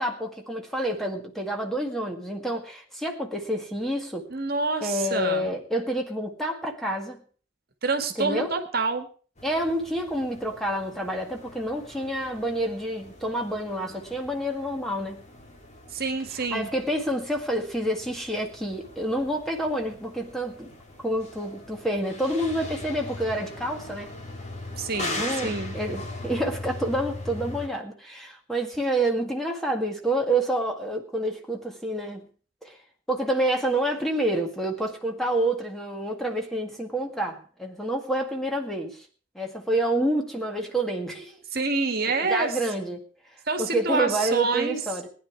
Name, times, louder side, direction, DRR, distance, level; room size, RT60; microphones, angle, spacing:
voice 1, 0.0-4.3 4.8-7.2 8.2-8.5 9.4-15.3 16.3-20.7 21.0-24.2 25.2-32.3 32.6-32.8 33.1-39.1 39.4-41.4 42.2-43.0 43.6-45.1, right 1 dB, ahead, 2 dB, 1.9 m, -28 dB
voice 2, 4.3-5.5 7.8-9.1 15.9-16.7 24.8-25.8 41.5-42.6 43.5-44.8, right 3 dB, 50° right, 6 dB, 1.9 m, -27 dB
sound 1, 9.4-27.7, left 2 dB, 35° left, 3.2 m, -40 dB
19.5 x 10.0 x 4.7 m, 0.41 s
head